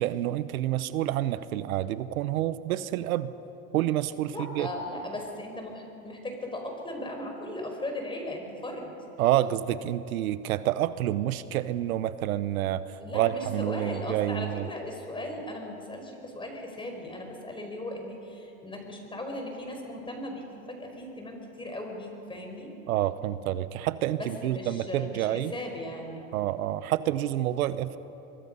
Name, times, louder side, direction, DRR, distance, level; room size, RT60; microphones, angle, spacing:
voice 1, 0.0-3.3 3.7-4.7 9.2-14.7 22.9-25.5 26.3-28.0, right 13 dB, 90° right, 14 dB, 0.9 m, -28 dB
voice 2, 4.3-8.9 13.0-22.7 24.2-26.2, left 1 dB, 10° left, 2 dB, 4.9 m, -37 dB
24.0 x 23.5 x 5.5 m, 2.9 s
supercardioid pair, 115°, 41 cm